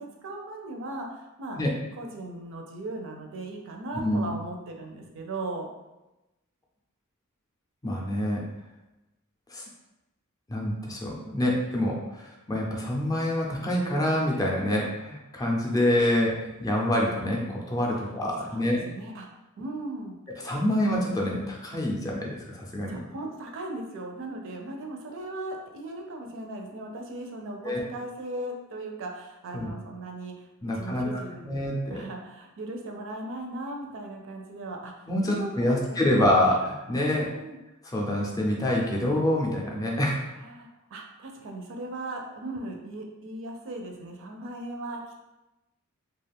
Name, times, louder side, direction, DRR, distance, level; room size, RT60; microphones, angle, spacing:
voice 1, 0.0-1.6 2.0-5.7 18.4-19.3 19.6-20.2 22.9-30.5 30.8-31.6 31.9-36.0 37.1-37.6 40.4-45.2, right 2 dB, 60° right, 2 dB, 0.5 m, -38 dB
voice 2, 7.8-8.4 9.5-9.6 10.5-18.8 20.3-23.0 27.6-27.8 29.5-29.7 30.6-31.0 31.4-32.0 35.1-37.3 37.8-40.2, left 1 dB, 15° left, -2 dB, 0.4 m, -26 dB
2.4 x 2.3 x 3.3 m, 1.0 s
head